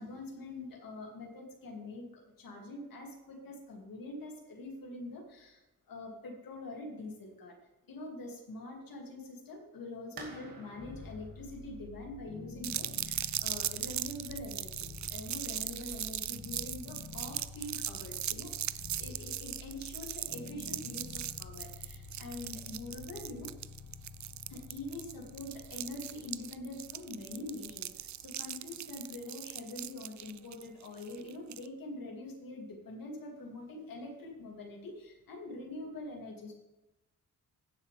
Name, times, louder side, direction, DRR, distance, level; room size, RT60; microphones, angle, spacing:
voice 1, 0.0-7.6 7.9-18.5 19.0-23.5 24.5-36.5, left 2 dB, 80° left, 1 dB, 2.4 m, -44 dB
sound 1, 10.2-15.6, right 4 dB, 85° right, 1.8 m, -54 dB
sound 2, 10.7-29.8, left 4 dB, 55° left, 1.1 m, -50 dB
sound 3, 12.6-31.7, right 11 dB, 55° right, 0.4 m, -39 dB
16.0 x 7.0 x 3.3 m, 1.0 s
cardioid pair, 95°, 34 cm